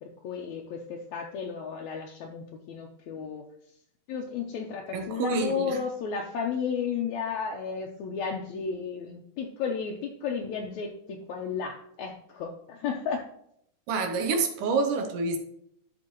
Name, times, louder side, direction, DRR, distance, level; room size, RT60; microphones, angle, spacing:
voice 1, 0.0-3.4 4.1-13.2, left 6 dB, 70° left, 1 dB, 2.0 m, -33 dB
voice 2, 4.9-5.8 13.9-15.4, right 4 dB, 85° right, 5 dB, 2.6 m, -27 dB
13.0 x 4.8 x 3.0 m, 0.71 s
omnidirectional pair, 3.6 m